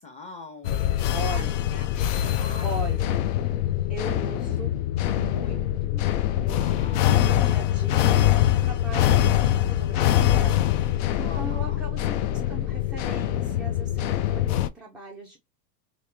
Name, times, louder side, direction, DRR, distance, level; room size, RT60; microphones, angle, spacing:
voice 1, 0.0-1.9 2.2-2.9 6.6-7.1 11.2-11.8, left 3 dB, 15° left, 1.0 m, -43 dB
sound 1, 0.6-14.7, left 12 dB, 50° left, 0.5 m, -24 dB
voice 2, 1.1-1.6 2.6-3.3 3.9-6.0 6.4-15.4, right 2 dB, ahead, 0.4 m, -39 dB
3.0 x 2.9 x 3.3 m
hypercardioid pair, 105°, 50 cm